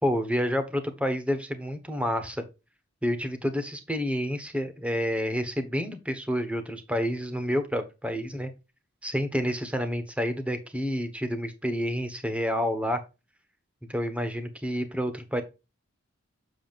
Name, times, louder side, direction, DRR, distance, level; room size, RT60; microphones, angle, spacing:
voice 1, 0.0-2.4 3.0-8.5 9.0-13.0 13.9-15.4, equal, 5° right, 8 dB, 1.2 m, -29 dB
7.6 x 7.1 x 2.5 m, 0.27 s
head